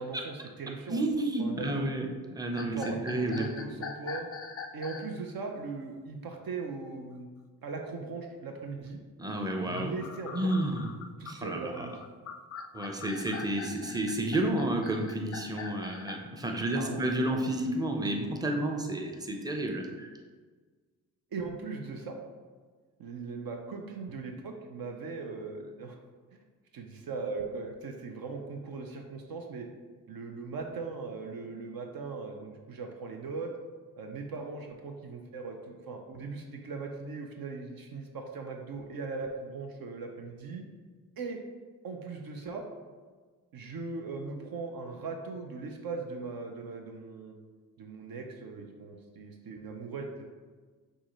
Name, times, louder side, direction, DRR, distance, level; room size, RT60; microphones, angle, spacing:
voice 1, 0.0-1.0 1.4-1.9 2.6-4.3 4.7-7.3 7.6-9.0 9.5-10.5 11.2-12.0 16.7-17.4 21.3-22.2 23.0-26.0 26.7-29.7 30.1-33.5 34.0-40.7 41.2-41.4 41.8-42.6 43.5-47.3 47.8-50.3, right 4 dB, 60° right, 3 dB, 0.7 m, -39 dB
voice 2, 0.9-3.5 9.2-9.9 10.3-10.9 11.2-11.9 12.7-20.1, right 1 dB, 10° right, 2 dB, 0.8 m, -31 dB
sound 1, 2.6-5.1 9.5-16.2, left 5 dB, 35° left, 0.5 m, -43 dB
6.1 x 2.6 x 3.0 m, 1.4 s
hypercardioid pair, 40°, 40 cm